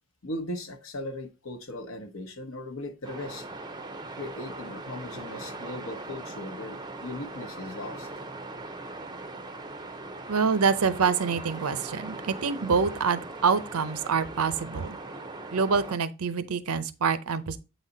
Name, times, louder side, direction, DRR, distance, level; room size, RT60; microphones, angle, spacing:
voice 1, 0.2-3.5 4.2-8.1, left 1 dB, 65° left, 0.9 m, -38 dB
sound 1, 3.0-16.0, right 2 dB, 20° right, 0.5 m, -40 dB
voice 2, 10.3-15.0 15.5-17.6, right 5 dB, 80° right, 0.6 m, -26 dB
7.9 x 4.1 x 3.9 m
head